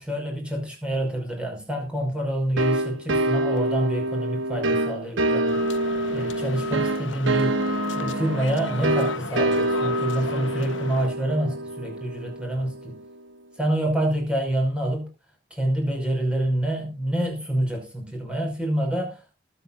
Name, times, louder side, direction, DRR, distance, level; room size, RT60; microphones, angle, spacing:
voice 1, 0.0-5.6 6.1-7.6 7.9-13.0 13.6-15.1 15.5-19.2, right 1 dB, 5° right, 5.3 m, -27 dB
sound 1, 2.6-13.0, right 1 dB, 65° right, 1.4 m, -26 dB
sound 2, 5.4-11.1, left 5 dB, 65° left, 0.9 m, -35 dB
20.5 x 8.8 x 2.5 m
head